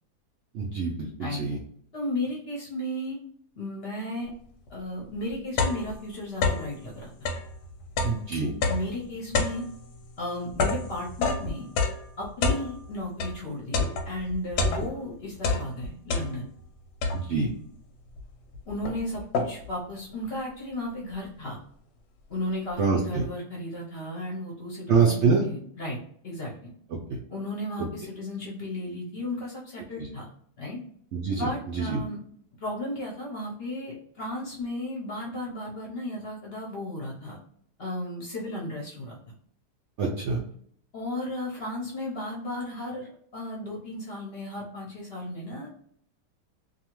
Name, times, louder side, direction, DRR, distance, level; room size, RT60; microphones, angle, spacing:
voice 1, 0.5-1.6 8.0-8.5 17.1-17.5 22.8-23.2 24.9-25.4 26.9-27.2 30.0-30.1 31.1-32.0 40.0-40.4, right 5 dB, 75° right, -1 dB, 0.6 m, -25 dB
voice 2, 1.9-3.2 3.6-4.3 4.7-7.1 8.7-9.6 10.2-11.7 12.2-16.5 18.7-21.6 22.3-26.7 27.3-30.3 30.6-30.8 31.4-32.2 32.6-37.4 37.8-39.2 40.9-45.7, left 1 dB, 55° left, -3 dB, 0.7 m, -34 dB
sound 1, 4.7-4.8 5.1-6.8 7.1-13.4 13.7-15.1 15.4-16.6 17.0-17.5 18.2-18.3 18.5-19.8, left 3 dB, 90° left, 1.2 m, -29 dB
2.7 x 2.4 x 2.9 m, 0.64 s
omnidirectional pair, 1.7 m